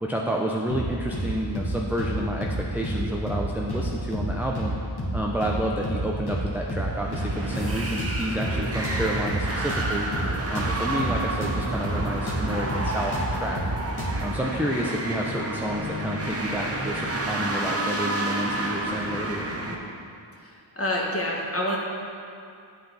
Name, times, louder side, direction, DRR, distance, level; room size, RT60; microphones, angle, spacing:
voice 1, 0.0-4.8 5.1-10.1 10.5-13.6 14.2-19.5, equal, 5° right, -2 dB, 0.5 m, -30 dB
sound 1, 0.7-1.3 1.5-1.7 2.0-3.0 3.3-3.4 3.7-4.7 5.0-5.1 5.4-6.4 6.7-6.9 7.1-8.6 8.8-11.6 11.8-12.0 12.3-14.3, equal, 50° left, 1.8 m, -30 dB
sound 2, 6.9-19.8, right 2 dB, 30° right, 0.9 m, -30 dB
voice 2, 20.4-21.8, left 1 dB, 30° left, -3 dB, 1.4 m, -27 dB
10.0 x 4.0 x 4.0 m, 2.5 s
cardioid pair, 40°, 49 cm